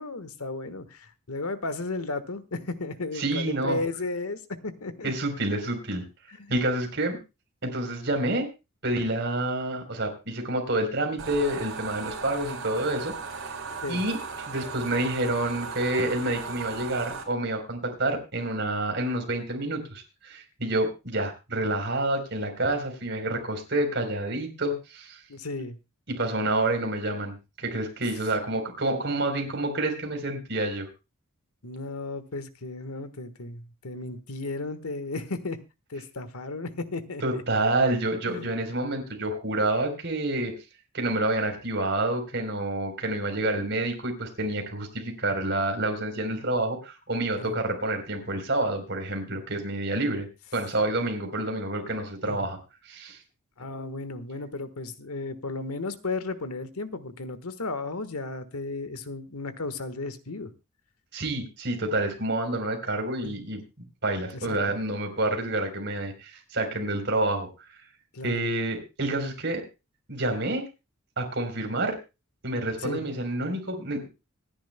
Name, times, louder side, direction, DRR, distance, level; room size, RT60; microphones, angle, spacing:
voice 1, 0.0-5.1 6.4-6.6 13.8-14.0 25.3-25.8 31.6-35.6 35.9-37.4 38.3-38.5 47.4-47.5 52.3-52.5 53.6-60.5 63.2-63.4 64.3-64.6 68.1-68.5 72.8-73.0, left 3 dB, 90° left, 12 dB, 1.4 m, -34 dB
voice 2, 3.2-3.8 5.0-6.0 6.5-7.2 7.6-8.5 8.8-13.1 13.9-14.2 14.5-25.2 26.1-30.9 37.2-40.5 40.9-50.3 50.5-52.6 52.9-53.2 61.1-63.6 64.0-67.8 68.2-69.6 70.1-70.7 71.2-72.0 72.4-74.1, right 2 dB, 50° right, 4 dB, 3.8 m, -28 dB
sound 1, 11.2-17.2, right 5 dB, 65° right, 4.0 m, -37 dB
25.5 x 10.5 x 2.2 m, 0.27 s
head